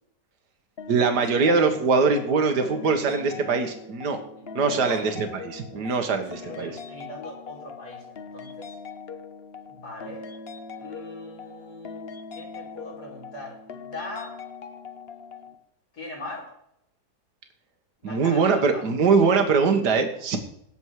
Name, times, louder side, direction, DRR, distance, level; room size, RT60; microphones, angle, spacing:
sound 1, 0.8-15.5, left 5 dB, 45° left, 1.1 m, -41 dB
voice 1, 0.9-4.2 4.6-6.7 18.0-20.4, right 4 dB, 80° right, 6 dB, 2.0 m, -22 dB
voice 2, 2.3-2.7 4.2-5.1 5.7-5.9 6.4-8.7 9.7-10.2 10.8-14.3 15.9-16.5 18.0-18.8 20.2-20.4, left 2 dB, 70° left, -2 dB, 4.3 m, -40 dB
17.5 x 7.3 x 4.8 m, 0.74 s
omnidirectional pair, 1.8 m